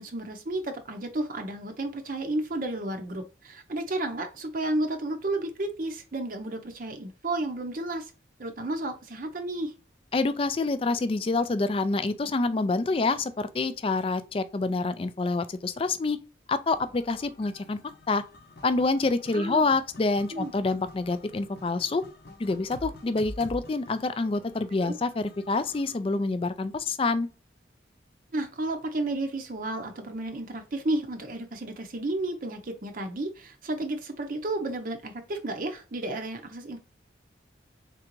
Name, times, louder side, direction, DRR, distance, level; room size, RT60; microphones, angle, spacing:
voice 1, 0.0-8.1 8.4-9.7 19.3-19.7 20.3-20.5 24.8-24.9 28.3-36.8, right 2 dB, 45° right, 0.6 m, -32 dB
voice 2, 10.1-16.2 16.5-17.8 18.1-18.2 18.6-22.0 22.4-27.3, left 3 dB, 30° left, 0.3 m, -27 dB
sound 1, 16.7-26.0, left 1 dB, 55° left, 0.8 m, -48 dB
3.8 x 3.4 x 3.0 m
head